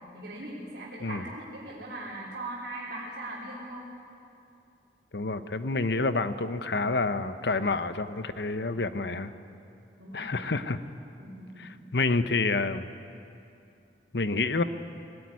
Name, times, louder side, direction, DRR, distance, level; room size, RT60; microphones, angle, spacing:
voice 1, 0.1-3.9 10.0-10.4 11.2-11.9, right 1 dB, 70° right, -8 dB, 3.5 m, -40 dB
voice 2, 5.1-9.3 10.1-10.8 11.6-12.9 14.1-14.6, left 3 dB, 75° left, 11 dB, 0.9 m, -28 dB
20.0 x 16.5 x 9.6 m, 2.6 s
head